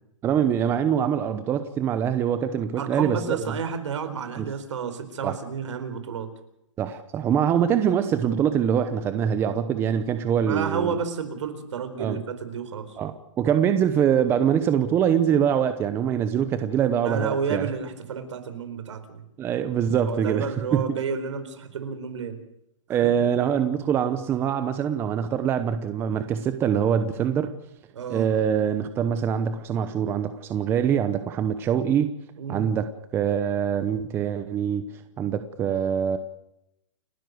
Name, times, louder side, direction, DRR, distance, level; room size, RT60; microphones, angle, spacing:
voice 1, 0.2-3.4 4.4-4.5 5.2-5.4 6.8-11.0 12.0-12.2 13.0-17.7 19.4-20.8 22.9-27.5 28.1-32.1 32.5-32.9 33.1-34.8 35.2-36.2, right 8 dB, 15° right, 10 dB, 0.9 m, -24 dB
voice 2, 2.8-6.3 7.6-7.8 10.4-13.0 17.0-19.2 20.1-22.4 23.0-23.1 27.9-28.3 32.4-32.7, right 6 dB, 65° right, 10 dB, 4.5 m, -31 dB
29.5 x 12.0 x 7.9 m, 0.80 s
hypercardioid pair, 160°, 16 cm